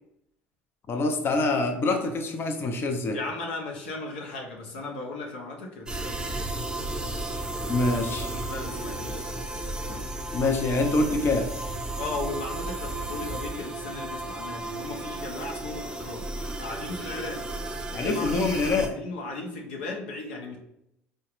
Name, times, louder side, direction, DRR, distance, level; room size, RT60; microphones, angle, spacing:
voice 1, 0.9-3.2 7.7-8.3 10.3-11.5 17.9-18.9, left 3 dB, 40° left, 4 dB, 0.5 m, -25 dB
voice 2, 3.1-6.4 8.3-9.1 9.8-10.1 12.0-16.2 16.6-17.4 17.9-20.6, left 2 dB, 85° left, 0 dB, 0.7 m, -36 dB
sound 1, 5.9-18.9, right 2 dB, 15° right, 0.6 m, -34 dB
3.8 x 2.1 x 2.9 m, 0.79 s
hypercardioid pair, 65°, 6 cm